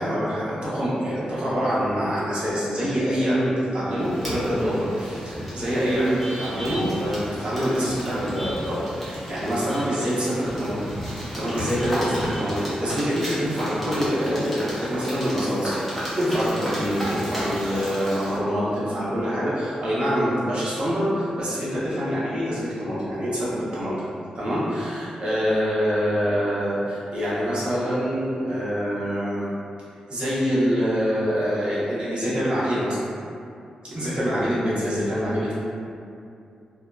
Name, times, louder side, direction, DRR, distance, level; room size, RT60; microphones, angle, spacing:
voice 1, 0.0-10.8 11.3-23.9 24.3-29.5 30.1-33.1 33.9-35.5, equal, 45° right, -9 dB, 0.8 m, -25 dB
sound 1, 3.9-18.4, equal, 5° left, 0.8 m, -33 dB
2.6 x 2.2 x 2.3 m, 2.5 s
wide cardioid pair, 130°, 2 cm